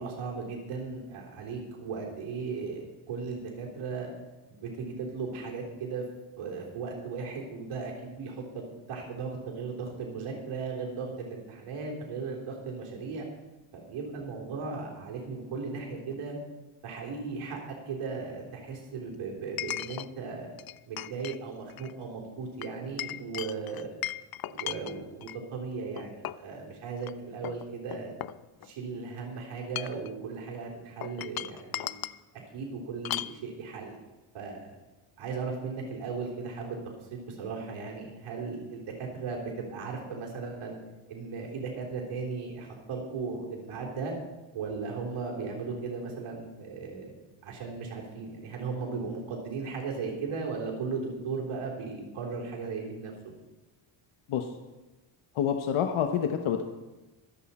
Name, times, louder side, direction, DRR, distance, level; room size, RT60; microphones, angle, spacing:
voice 1, 0.0-4.1 4.5-6.0 6.4-8.6 8.9-13.3 13.7-16.4 16.8-20.5 20.9-23.9 24.5-28.1 28.6-32.0 32.5-34.0 34.3-34.7 35.2-40.8 41.1-44.1 44.5-47.1 47.4-53.1, right 4 dB, 85° right, -1 dB, 3.6 m, -37 dB
Chink clink, 16.1-16.2 19.6-20.1 20.6-21.4 21.7-21.9 22.6-25.4 26.0-26.5 27.0-27.1 27.4-28.9 29.6-30.1 31.0-32.2 33.0-33.4, left 13 dB, 50° left, 0.5 m, -37 dB
voice 2, 55.3-56.6, left 8 dB, 70° left, 5 dB, 1.1 m, -27 dB
24.0 x 8.2 x 4.3 m, 1.1 s
cardioid pair, 95°, 50 cm